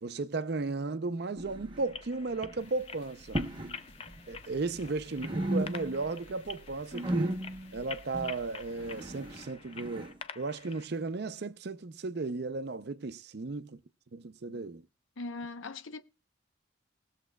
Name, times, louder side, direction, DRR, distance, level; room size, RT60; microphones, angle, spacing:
voice 1, 0.0-3.4 4.3-7.4 7.7-13.8 14.1-14.8, right 3 dB, 55° right, 0.5 m, -35 dB
sound 1, 1.4-2.1 2.3-2.7 3.2-3.8 4.1-4.9 5.2-6.1 6.4-10.2, right 1 dB, 25° right, 0.9 m, -35 dB
sound 2, 1.8-10.9, left 6 dB, 30° left, 0.4 m, -47 dB
sound 3, 2.6-9.5, equal, 55° left, 1.9 m, -56 dB
voice 2, 15.2-16.0, left 3 dB, 80° left, 0.9 m, -40 dB
20.5 x 7.2 x 2.3 m
head